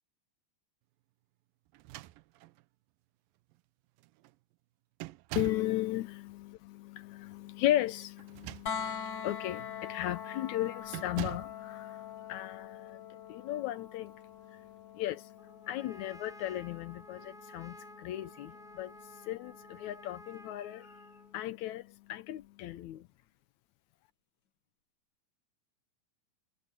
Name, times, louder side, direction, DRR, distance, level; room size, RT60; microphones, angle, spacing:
sound 1, 1.7-2.6 3.5-3.6 4.0-4.3 5.0-5.7 8.2-9.0 9.6-9.8 10.9-11.6, right 17 dB, 85° right, 2.5 m, -43 dB
voice 1, 5.4-23.1, left 14 dB, 75° left, 1.8 m, -36 dB
sound 2, 8.7-20.5 22.4-22.5, left 7 dB, 55° left, 1.3 m, -45 dB
Trumpet, 15.4-21.4, equal, ahead, 5.6 m, -53 dB
omnidirectional pair, 4.0 m